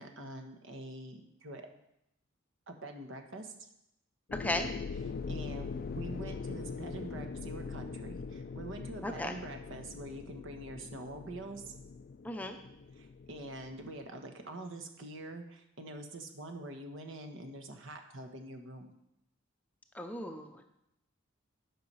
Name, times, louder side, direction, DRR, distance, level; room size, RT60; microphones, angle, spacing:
voice 1, 0.0-1.7 2.7-3.5 5.3-11.7 12.9-18.9, right 1 dB, 65° right, 5 dB, 1.3 m, -45 dB
sound 1, 4.3-14.1, left 4 dB, 45° left, 0.4 m, -42 dB
voice 2, 9.0-9.3 12.2-12.6 19.9-20.6, left 1 dB, 10° left, 5 dB, 0.6 m, -36 dB
10.5 x 5.9 x 5.5 m, 0.80 s
head